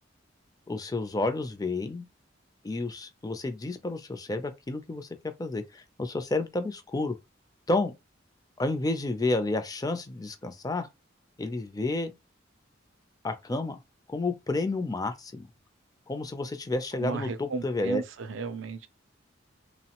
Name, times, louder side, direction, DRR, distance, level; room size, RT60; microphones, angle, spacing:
voice 1, 0.7-2.0 2.6-7.2 7.7-7.9 8.6-10.9 11.4-12.1 13.2-13.8 14.1-15.5 16.1-18.0, left 2 dB, 20° left, 0.4 m, -30 dB
voice 2, 17.0-18.9, right 4 dB, 80° right, 0.4 m, -34 dB
3.1 x 2.0 x 2.9 m
head